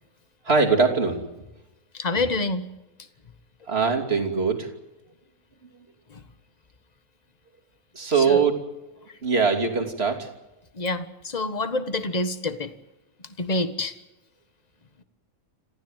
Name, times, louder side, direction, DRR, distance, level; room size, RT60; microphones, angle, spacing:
voice 1, 0.5-1.2 3.7-4.7 7.9-8.5 9.2-10.3, right 5 dB, 45° right, 3 dB, 3.2 m, -22 dB
voice 2, 1.9-2.7 6.1-6.2 8.2-8.4 10.7-12.7 13.4-13.9, left 2 dB, 30° left, 10 dB, 1.5 m, -27 dB
26.5 x 16.0 x 9.2 m, 1.0 s
omnidirectional pair, 1.5 m